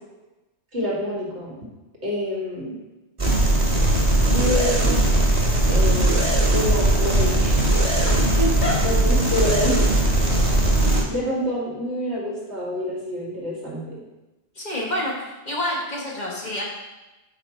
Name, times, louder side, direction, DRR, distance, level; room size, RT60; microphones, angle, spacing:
voice 1, 0.7-1.6 2.0-2.8 4.3-5.0 5.7-7.7 8.8-9.9 11.1-14.0, left 1 dB, 80° right, -5 dB, 2.2 m, -27 dB
sound 1, 3.2-11.0, right 1 dB, 30° right, 1.3 m, -19 dB
voice 2, 8.1-8.8 14.5-15.1 15.4-16.6, left 1 dB, 40° left, -3 dB, 1.4 m, -27 dB
5.7 x 5.1 x 4.4 m, 1.1 s
omnidirectional pair, 1.1 m